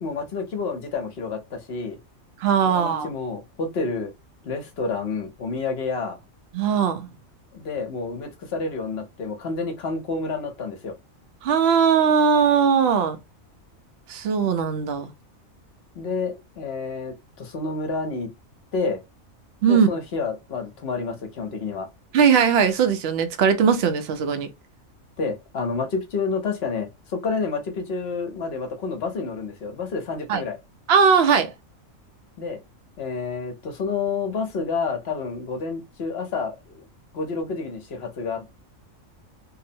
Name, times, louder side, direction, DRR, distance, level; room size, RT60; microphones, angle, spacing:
voice 1, 0.0-2.0 2.6-4.1 4.4-6.2 7.5-10.9 14.4-14.5 15.9-18.3 18.7-19.0 19.7-21.9 25.2-30.6 32.4-32.6 33.0-36.8 37.1-38.5, left 4 dB, 55° left, 0.9 m, -29 dB
voice 2, 2.4-3.1 6.5-7.1 11.4-13.2 14.1-15.1 19.6-19.9 22.1-24.5 30.3-30.4 30.9-31.5, right 6 dB, 65° right, 0.7 m, -19 dB
2.8 x 2.0 x 2.6 m
omnidirectional pair, 1.4 m